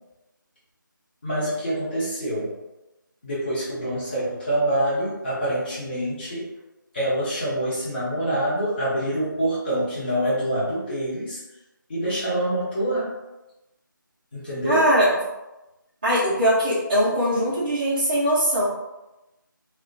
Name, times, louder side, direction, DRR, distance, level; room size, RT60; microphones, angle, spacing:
voice 1, 1.2-2.5 3.2-6.5 6.9-11.4 11.9-13.1 14.3-14.8, right 1 dB, 30° left, -10 dB, 0.6 m, -26 dB
voice 2, 14.6-15.2 16.0-18.7, equal, 25° right, -10 dB, 0.4 m, -21 dB
2.3 x 2.1 x 2.5 m, 0.99 s
figure-of-eight pair, 160°, 11 cm